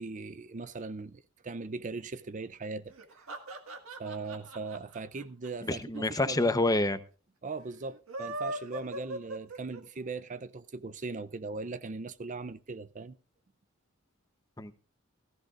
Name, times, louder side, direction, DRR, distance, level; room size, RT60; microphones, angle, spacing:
voice 1, 0.0-2.9 4.0-6.6 7.4-13.2, right 3 dB, 35° right, 0.5 m, -39 dB
sound 1, 2.9-6.3 6.5-6.6 6.8-6.9 7.9-10.1, right 1 dB, 75° right, 1.9 m, -40 dB
voice 2, 5.6-7.0 14.6-14.7, left 2 dB, 15° left, 0.8 m, -27 dB
16.5 x 15.5 x 2.5 m
head